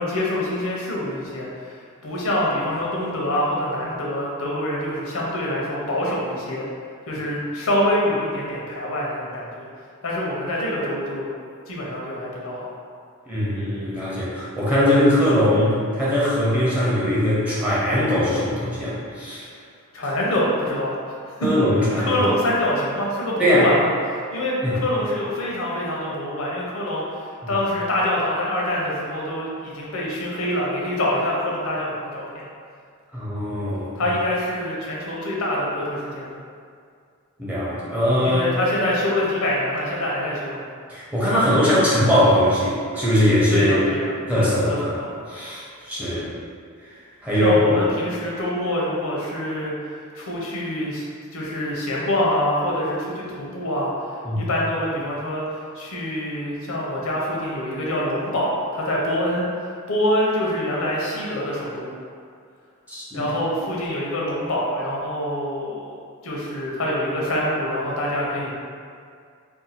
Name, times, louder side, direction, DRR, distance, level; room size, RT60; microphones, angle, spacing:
voice 1, 0.0-6.6 7.1-9.7 10.0-11.3 11.7-12.6 19.9-21.5 22.0-32.5 34.0-36.4 38.2-40.6 43.5-45.1 47.4-49.7 50.1-51.0 51.3-55.4 55.7-61.9 63.1-66.0 66.2-68.5, left 1 dB, 80° left, -4 dB, 0.7 m, -25 dB
voice 2, 13.2-19.4 21.4-22.2 23.4-23.7 24.6-24.8 27.4-27.5 33.1-34.1 37.4-38.5 40.9-43.9 44.3-45.0 45.3-46.3 47.2-47.8 54.2-54.4 62.9-63.3, left 1 dB, 5° right, -9 dB, 0.7 m, -21 dB
2.6 x 2.2 x 4.1 m, 2.2 s
head